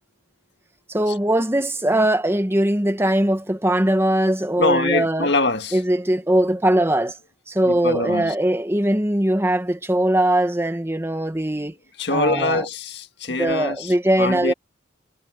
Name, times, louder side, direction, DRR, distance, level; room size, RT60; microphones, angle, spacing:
voice 1, 0.9-5.3 5.7-7.2 7.5-11.8 12.1-12.6 13.3-14.5, right 1 dB, 15° right, 1.3 m, -21 dB
voice 2, 4.6-5.8 7.6-8.3 12.0-14.5, left 2 dB, 70° left, 1.8 m, -24 dB
head